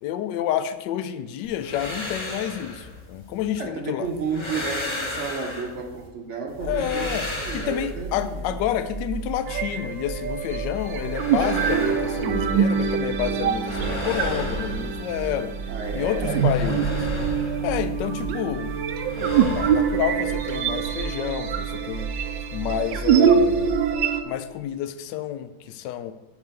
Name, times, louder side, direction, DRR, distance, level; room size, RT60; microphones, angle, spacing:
voice 1, 0.0-4.1 6.6-7.3 7.5-15.5 15.9-17.0 17.6-18.7 19.2-22.1 22.5-23.8 24.2-26.1, left 11 dB, 75° left, 11 dB, 1.1 m, -29 dB
sound 1, 1.4-3.6 4.0-6.1 6.5-8.4 10.8-13.0 13.2-15.5 15.8-18.4 18.6-21.0, left 1 dB, 20° left, 0.8 m, -35 dB
voice 2, 3.5-8.5 15.7-17.4, right 4 dB, 50° right, 3 dB, 0.9 m, -32 dB
sound 2, 6.6-23.9, right 4 dB, 90° right, 2.4 m, -35 dB
sound 3, 9.5-24.2, right 7 dB, 70° right, 1.3 m, -25 dB
9.4 x 3.3 x 6.7 m, 1.1 s
omnidirectional pair, 2.2 m